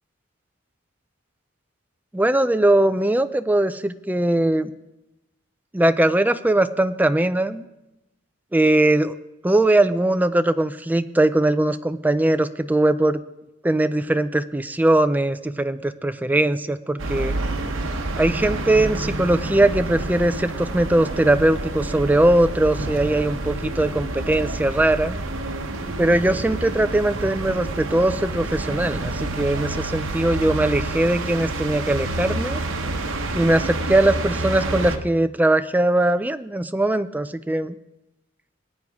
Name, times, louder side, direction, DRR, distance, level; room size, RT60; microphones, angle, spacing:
voice 1, 2.1-4.7 5.7-7.6 8.5-9.2 9.4-13.2 13.6-17.3 18.2-25.2 26.0-32.6 33.3-37.7, right 1 dB, 10° right, 11 dB, 0.4 m, -20 dB
sound 1, 17.0-35.0, right 2 dB, 85° right, 1.0 m, -28 dB
18.5 x 9.2 x 3.6 m, 0.93 s
head